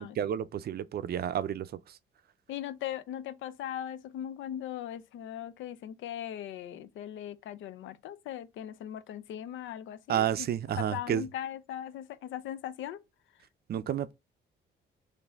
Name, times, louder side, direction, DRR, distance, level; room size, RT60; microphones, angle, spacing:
voice 1, 0.0-2.0 10.1-11.2 13.7-14.1, right 10 dB, 50° right, 0.5 m, -31 dB
voice 2, 2.5-10.5 10.8-13.0, left 11 dB, 80° left, 0.5 m, -39 dB
4.1 x 2.7 x 3.4 m
cardioid pair, 90°, 20 cm